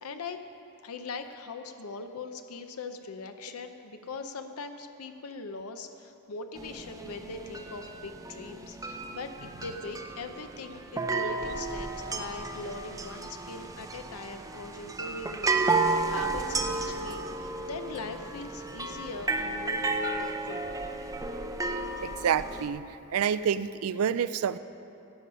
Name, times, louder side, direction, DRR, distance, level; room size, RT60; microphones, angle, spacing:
voice 1, 0.0-0.4 0.8-20.7, left 3 dB, 75° left, 7 dB, 0.7 m, -41 dB
sound 1, 6.6-22.7, right 3 dB, 15° right, 0.6 m, -33 dB
voice 2, 22.0-22.8 23.1-24.6, right 8 dB, 75° right, 15 dB, 0.4 m, -28 dB
16.5 x 8.3 x 5.6 m, 2.8 s
head